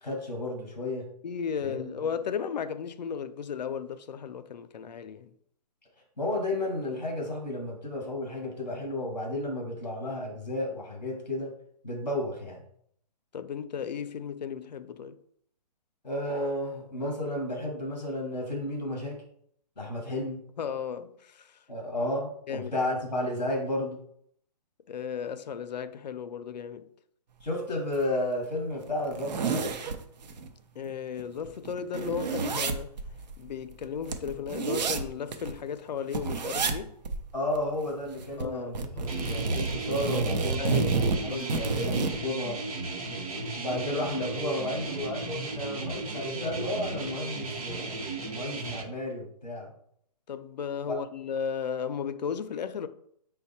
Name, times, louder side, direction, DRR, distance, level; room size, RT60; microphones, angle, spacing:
voice 1, 0.0-1.1 1.6-1.9 6.2-11.5 11.8-12.7 16.0-19.2 19.8-20.4 21.7-24.0 27.4-29.7 37.3-42.6 43.5-47.9 48.3-49.7 50.9-51.0, left 1 dB, ahead, 0.3 m, -32 dB
voice 2, 1.2-5.3 13.3-15.2 20.6-21.6 22.5-22.7 24.9-26.9 30.8-32.9 33.4-37.0 38.4-39.2 40.6-41.4 50.3-52.9, left 7 dB, 85° left, 0.5 m, -35 dB
sound 1, 27.9-28.0 28.4-28.5 28.9-30.5 30.9-31.0 31.2-35.6 36.1-36.8 37.0-37.2 37.5-38.5 38.7-42.2, right 4 dB, 85° right, 0.7 m, -30 dB
sound 2, 39.1-48.8, right 3 dB, 60° right, 0.9 m, -35 dB
5.2 x 2.2 x 4.1 m
hypercardioid pair, 170°, 21 cm